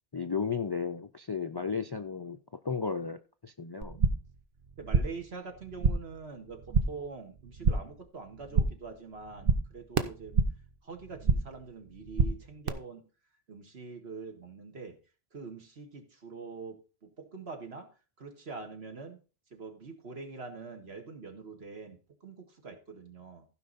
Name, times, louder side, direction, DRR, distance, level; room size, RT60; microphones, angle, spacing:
voice 1, 0.1-2.4 2.6-4.0, left 5 dB, 40° left, 0.3 m, -34 dB
sound 1, 3.8-4.4 4.6-5.3 5.5-6.2 6.5-7.1 7.4-8.0 8.3-8.9 9.2-10.7 11.0-11.6 11.9-12.7, right 4 dB, 55° right, 1.0 m, -28 dB
voice 2, 4.8-10.3 10.8-13.0 13.5-15.0 15.3-17.9 18.2-19.2 19.5-23.5, right 4 dB, 75° right, 2.0 m, -44 dB
15.5 x 5.3 x 4.1 m
omnidirectional pair, 1.1 m